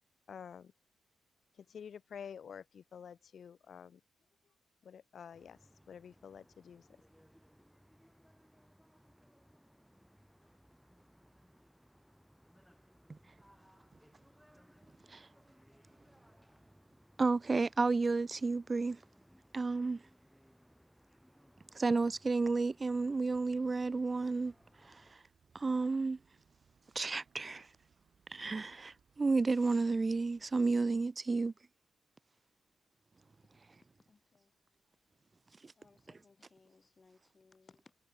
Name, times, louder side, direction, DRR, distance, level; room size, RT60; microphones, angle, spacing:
voice 1, 0.3-0.7 1.5-4.0 4.8-5.6 5.9-6.9, left 7 dB, 65° left, 0.8 m, -49 dB
sound 1, 5.3-25.1, equal, ahead, 7.6 m, -65 dB
voice 2, 17.2-19.0 19.5-20.0 21.7-25.2 25.5-26.2 27.0-27.7 28.3-31.5 35.6-35.7, right 3 dB, 35° right, 0.3 m, -32 dB
sound 2, 22.9-30.8, right 6 dB, 60° right, 7.6 m, -71 dB
voice 3, 34.1-34.5 35.8-38.0, left 4 dB, 40° left, 2.9 m, -65 dB
supercardioid pair, 55°, 0 cm